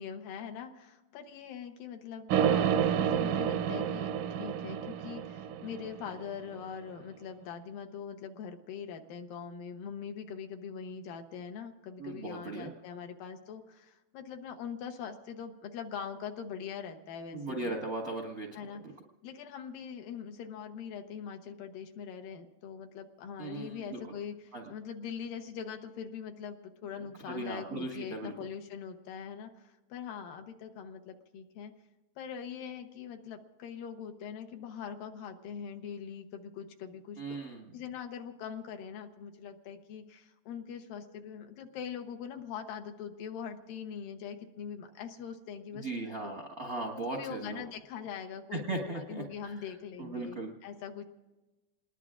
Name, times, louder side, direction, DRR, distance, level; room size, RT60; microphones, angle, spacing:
voice 1, 0.0-4.1 4.4-17.7 18.6-18.8 19.2-31.7 32.2-37.4 37.7-45.9 46.2-46.3 46.9-51.0, left 7 dB, 70° left, 5 dB, 2.5 m, -42 dB
sound 1, 2.3-6.4, right 9 dB, 75° right, 1.8 m, -29 dB
voice 2, 12.0-12.7 17.3-18.9 23.4-24.0 24.5-24.6 27.2-28.3 37.2-37.7 45.7-47.6 48.5-49.5 50.0-50.5, right 2 dB, 55° right, 1 dB, 0.9 m, -38 dB
28.0 x 20.5 x 2.5 m, 1.1 s
omnidirectional pair, 4.3 m